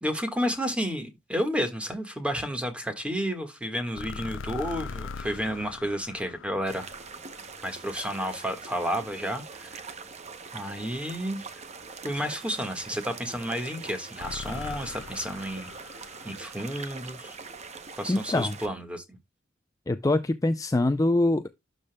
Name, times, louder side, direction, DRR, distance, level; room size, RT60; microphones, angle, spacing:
voice 1, 0.0-6.8 7.6-9.9 10.5-11.6 12.0-15.7 16.2-17.4 17.9-19.0, equal, 5° right, 1.6 m, -31 dB
sound 1, 4.0-8.1 14.2-17.3, left 5 dB, 80° left, 0.5 m, -41 dB
sound 2, 6.7-18.7, right 5 dB, 35° right, 0.8 m, -43 dB
voice 2, 18.1-18.6 19.9-21.5, left 2 dB, 20° left, 0.4 m, -24 dB
12.0 x 5.2 x 2.3 m
head